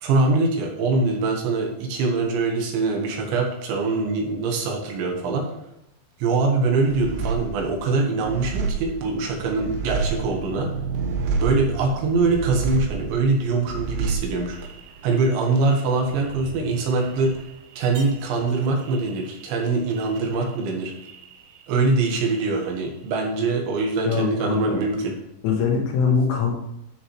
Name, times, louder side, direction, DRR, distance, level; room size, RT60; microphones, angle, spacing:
voice 1, 0.0-5.5 6.2-10.7 11.4-14.6 15.0-17.3 17.8-20.9 21.7-25.1, right 3 dB, 70° right, 1 dB, 3.5 m, -23 dB
sound 1, 6.9-21.8 22.1-22.9, right 5 dB, 90° right, 2.1 m, -31 dB
voice 2, 24.1-24.8 25.4-26.5, left 6 dB, 85° left, -1 dB, 4.4 m, -22 dB
12.5 x 6.8 x 3.2 m, 0.84 s
omnidirectional pair, 5.6 m